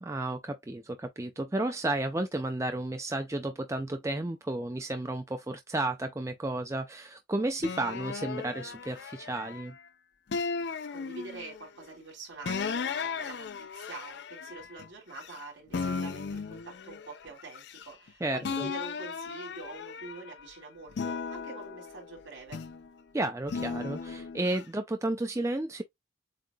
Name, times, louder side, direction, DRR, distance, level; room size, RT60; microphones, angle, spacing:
voice 1, 0.0-9.7 18.2-18.7 23.1-25.8, right 2 dB, 15° right, 0.4 m, -32 dB
sound 1, 7.6-9.8 10.3-11.7 12.5-15.4 15.7-18.1 18.4-20.4 20.9-22.9 23.5-24.6, left 5 dB, 60° left, 0.4 m, -36 dB
voice 2, 10.9-22.6, right 3 dB, 70° right, 3.3 m, -45 dB
7.6 x 2.6 x 2.3 m
head